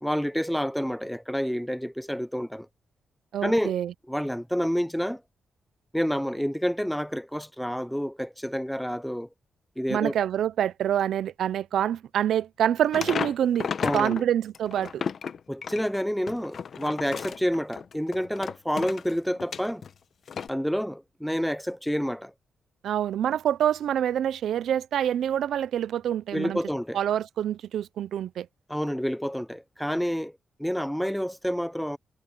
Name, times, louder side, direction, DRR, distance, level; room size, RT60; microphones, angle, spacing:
voice 1, 0.0-2.7 3.4-3.7 4.1-5.2 5.9-9.3 9.8-10.1 13.8-14.2 15.5-19.8 20.5-22.3 26.3-27.0 28.7-32.0, equal, ahead, 0.5 m, -28 dB
voice 2, 3.3-3.9 9.9-15.0 22.8-26.6 26.9-28.5, right 10 dB, 75° right, 0.5 m, -26 dB
sound 1, 12.9-14.2 14.5-19.9 20.3-20.5, left 6 dB, 45° left, 0.9 m, -33 dB
wide cardioid pair, 170°, 0 cm